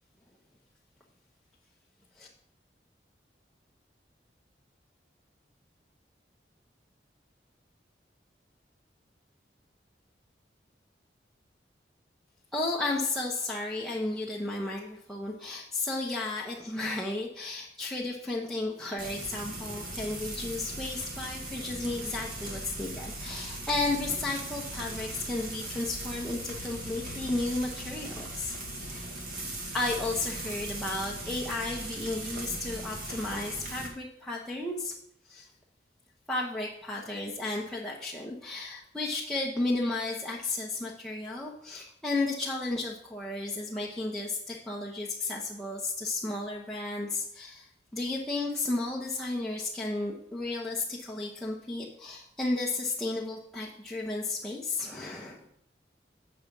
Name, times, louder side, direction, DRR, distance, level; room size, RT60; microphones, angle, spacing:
voice 1, 12.5-28.5 28.8-29.1 29.7-34.9 35.3-35.5 36.3-55.5, left 2 dB, 5° left, -4 dB, 0.9 m, -33 dB
Frying (food), 19.0-33.9, right 1 dB, 50° right, 1.7 m, -39 dB
7.8 x 5.9 x 5.3 m, 0.69 s
head